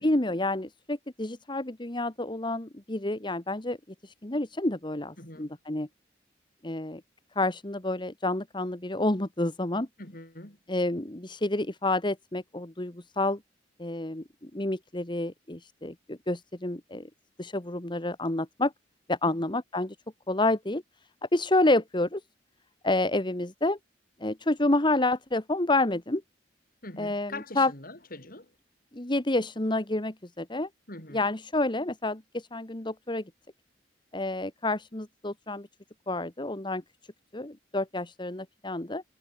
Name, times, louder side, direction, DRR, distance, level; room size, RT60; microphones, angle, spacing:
voice 1, 0.0-3.8 4.0-5.9 6.6-7.0 7.3-9.9 10.7-13.4 13.8-17.1 17.4-18.7 19.1-19.9 20.3-20.8 21.3-22.2 22.8-23.8 24.2-26.2 27.0-27.7 28.9-30.7 31.1-33.2 34.1-35.7 36.1-36.8 37.3-39.0, left 2 dB, 25° left, 1.5 m, -29 dB
voice 2, 5.2-5.6 10.0-10.6 19.3-19.4 26.8-28.5 30.9-31.3, left 2 dB, 50° left, 6.9 m, -43 dB
head